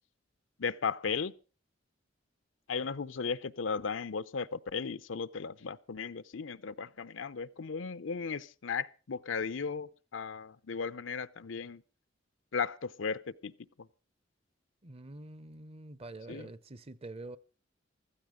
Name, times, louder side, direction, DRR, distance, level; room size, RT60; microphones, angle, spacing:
voice 1, 0.6-1.3 2.7-11.8 12.5-13.5 13.8-13.9 16.3-16.5, left 5 dB, 85° left, 0.7 m, -36 dB
voice 2, 14.8-17.4, right 2 dB, 30° right, 0.7 m, -46 dB
15.5 x 13.5 x 5.0 m
head